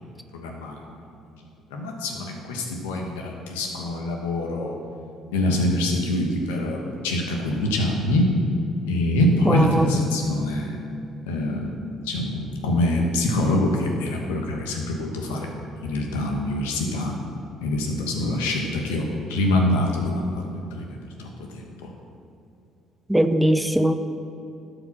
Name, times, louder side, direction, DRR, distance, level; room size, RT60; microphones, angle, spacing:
voice 1, 0.3-0.8 1.7-4.7 5.3-8.3 8.9-10.8 11.3-15.5 15.8-17.1 17.6-21.9, left 1 dB, 85° left, 1 dB, 1.2 m, -25 dB
voice 2, 9.5-9.9 23.1-23.9, right 1 dB, 5° right, 8 dB, 0.6 m, -20 dB
11.5 x 5.1 x 5.9 m, 2.7 s
hypercardioid pair, 60°, 0 cm